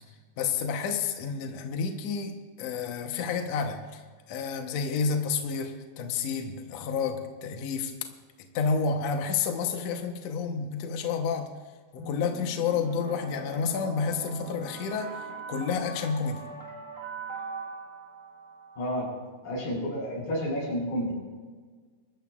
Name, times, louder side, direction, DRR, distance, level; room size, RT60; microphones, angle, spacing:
voice 1, 0.4-4.0 4.3-7.9 8.5-11.5 11.9-15.1 15.5-16.4, left 5 dB, 75° left, 4 dB, 1.5 m, -30 dB
sound 1, 12.0-19.0, right 3 dB, 45° right, 0.3 m, -41 dB
voice 2, 18.8-19.1 19.4-21.1, equal, 55° left, -3 dB, 6.7 m, -30 dB
24.5 x 14.0 x 2.4 m, 1.5 s
omnidirectional pair, 4.5 m